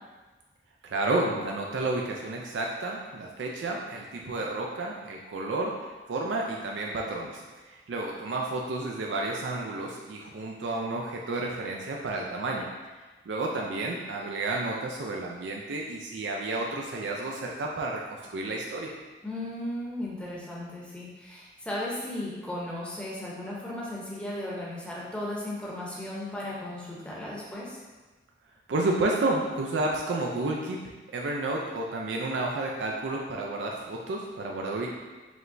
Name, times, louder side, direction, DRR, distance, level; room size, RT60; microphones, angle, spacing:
voice 1, 0.8-7.4 7.7-12.7 13.3-18.9 28.7-30.8 31.1-34.9, right 2 dB, 90° right, -1 dB, 0.4 m, -31 dB
voice 2, 19.2-27.8, left 1 dB, 5° left, -6 dB, 0.7 m, -36 dB
4.8 x 3.2 x 2.6 m, 1.3 s
head